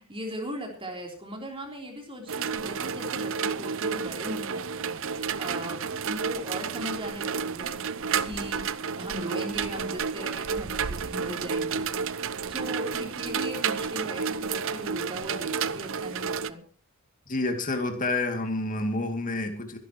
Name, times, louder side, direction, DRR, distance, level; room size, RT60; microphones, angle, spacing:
voice 1, 0.0-7.8 8.2-16.6, equal, 25° right, 1 dB, 3.6 m, -38 dB
sound 1, 2.3-16.5, right 6 dB, 65° right, 0.7 m, -31 dB
voice 2, 17.3-19.8, left 2 dB, 40° left, 4 dB, 2.5 m, -29 dB
24.0 x 11.5 x 3.0 m, 0.36 s
head